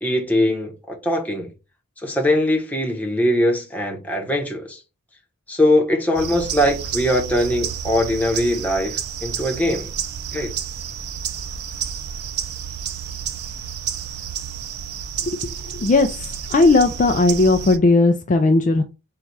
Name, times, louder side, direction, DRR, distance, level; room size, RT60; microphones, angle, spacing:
voice 1, 0.0-1.5 2.0-4.8 5.5-9.9 10.3-10.5, left 1 dB, 5° left, 0.9 m, -21 dB
sound 1, 6.1-17.8, right 8 dB, 80° right, 0.5 m, -30 dB
voice 2, 15.8-18.8, left 3 dB, 35° left, 0.3 m, -16 dB
4.1 x 2.3 x 4.5 m
head